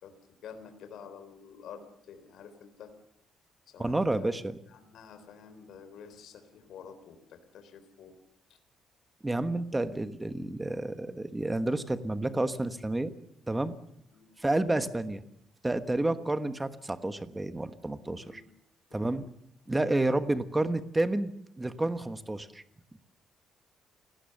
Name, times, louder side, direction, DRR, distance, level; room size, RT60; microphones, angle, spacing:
voice 1, 0.0-2.9 3.7-4.3 4.7-8.2 8.5-8.6 14.1-14.3 18.1-18.5 18.9-19.1, left 7 dB, 65° left, 8 dB, 3.7 m, -49 dB
voice 2, 3.8-4.6 9.2-13.1 13.5-13.7 14.4-15.2 15.6-18.4 18.9-19.2 19.7-22.6, right 2 dB, 10° right, 10 dB, 1.3 m, -30 dB
29.0 x 18.0 x 6.7 m, 0.74 s
cardioid pair, 155°, 0 cm